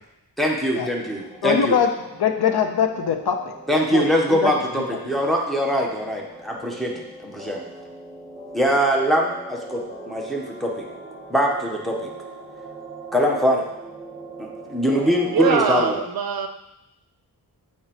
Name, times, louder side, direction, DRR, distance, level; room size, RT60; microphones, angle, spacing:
voice 1, 0.4-1.8 3.7-6.9 7.2-7.6 8.5-10.8 11.3-12.1 13.1-13.6 14.7-16.0, equal, ahead, -1 dB, 0.9 m, -22 dB
sound 1, 1.0-15.9, right 2 dB, 20° right, 1.9 m, -40 dB
voice 2, 1.4-1.9 2.2-3.4 3.7-4.0 4.3-4.5, left 7 dB, 70° left, 6 dB, 0.7 m, -21 dB
voice 3, 15.3-16.5, right 6 dB, 60° right, 7 dB, 0.6 m, -22 dB
7.3 x 4.6 x 2.9 m, 0.88 s
wide cardioid pair, 130°, 40 cm